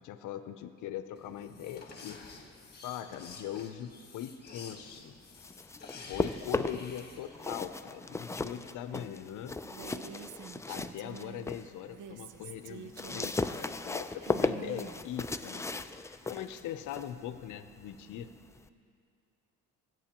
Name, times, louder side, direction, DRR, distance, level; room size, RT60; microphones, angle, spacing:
voice 1, 0.0-2.2 2.8-5.1 6.1-9.6 10.7-15.7 16.2-18.3, left 10 dB, 85° left, 11 dB, 0.7 m, -41 dB
sound 1, 1.2-7.5, left 4 dB, 35° left, 1.5 m, -50 dB
sound 2, 5.2-7.0 7.3-11.7 12.1-18.7, left 3 dB, 10° left, 0.4 m, -36 dB
Female speech woman speaking, 9.6-11.5 11.9-15.6, right 8 dB, 80° right, 0.6 m, -48 dB
27.0 x 9.1 x 3.0 m, 2.4 s
cardioid pair, 90°, 30 cm